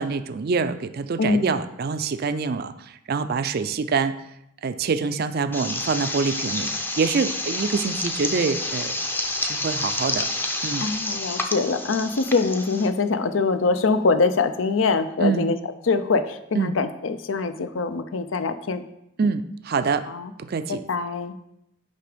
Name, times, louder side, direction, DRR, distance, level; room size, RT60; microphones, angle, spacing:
voice 1, 0.0-2.7 3.1-4.2 4.6-9.0 9.4-10.3 10.6-10.9 15.2-15.5 16.6-16.8 19.2-20.1 20.4-20.8, right 4 dB, 50° right, 11 dB, 0.4 m, -25 dB
voice 2, 1.2-1.6 10.8-15.6 15.8-18.8 20.1-20.3 20.7-21.4, left 4 dB, 75° left, 10 dB, 0.6 m, -23 dB
sound 1, 5.5-12.9, left 2 dB, 10° left, 0.6 m, -29 dB
9.7 x 3.5 x 5.0 m, 0.79 s
head